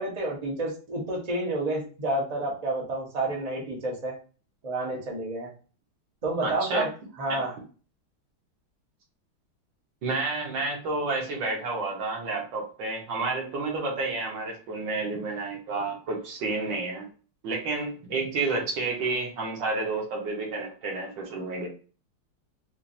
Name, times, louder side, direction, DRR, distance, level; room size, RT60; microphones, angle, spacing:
voice 1, 0.0-4.1 4.6-5.5 6.2-6.9 7.2-7.6, right 2 dB, 35° right, -2 dB, 0.6 m, -29 dB
voice 2, 6.4-6.9 7.3-7.4 10.0-17.1 17.4-21.7, right 3 dB, 60° right, 0 dB, 1.6 m, -30 dB
4.5 x 2.5 x 2.6 m, 0.37 s
omnidirectional pair, 2.3 m